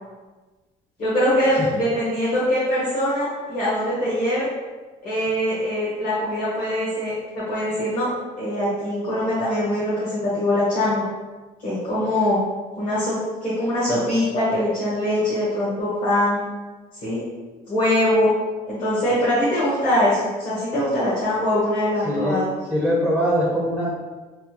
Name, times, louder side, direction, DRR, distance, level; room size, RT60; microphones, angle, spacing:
voice 1, 1.0-4.5 5.0-8.1 8.4-11.0 11.6-12.4 12.8-16.4 17.0-17.2 17.7-18.3 18.7-22.5, left 1 dB, 50° left, -11 dB, 1.2 m, -22 dB
voice 2, 22.0-22.4 22.7-23.9, equal, 10° left, -6 dB, 0.6 m, -22 dB
3.4 x 2.1 x 2.9 m, 1.3 s
cardioid pair, 110°, 17 cm